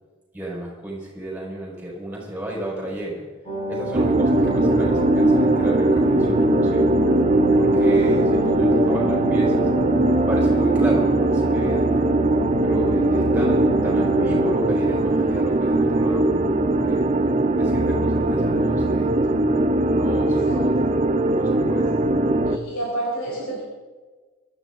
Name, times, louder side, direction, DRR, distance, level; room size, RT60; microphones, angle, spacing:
voice 1, 0.3-3.3 3.7-6.9 7.6-9.7 10.3-11.9 12.6-16.3 16.9-19.1 19.9-20.9 21.3-21.9, right 1 dB, 5° right, -4 dB, 5.1 m, -32 dB
sound 1, 3.4-16.5 16.8-16.9, left 1 dB, 25° left, 5.0 m, -28 dB
sound 2, 3.9-22.6, right 2 dB, 30° right, 0.7 m, -20 dB
voice 2, 20.3-20.6 22.4-23.6, right 1 dB, 85° left, -4 dB, 4.7 m, -30 dB
23.5 x 13.5 x 3.9 m, 1.4 s
head